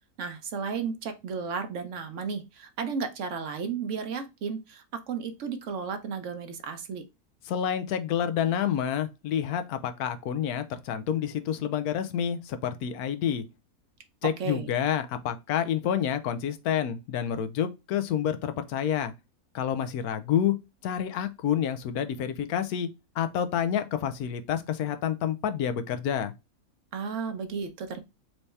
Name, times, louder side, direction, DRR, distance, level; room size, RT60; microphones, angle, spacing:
voice 1, 0.2-7.0 14.4-14.7 26.9-28.0, right 5 dB, 60° right, 1.0 m, -33 dB
voice 2, 7.5-13.4 14.2-19.1 19.5-20.5 20.8-22.9 23.2-26.3, left 9 dB, 90° left, 1.1 m, -28 dB
4.6 x 2.7 x 3.2 m
omnidirectional pair, 1.5 m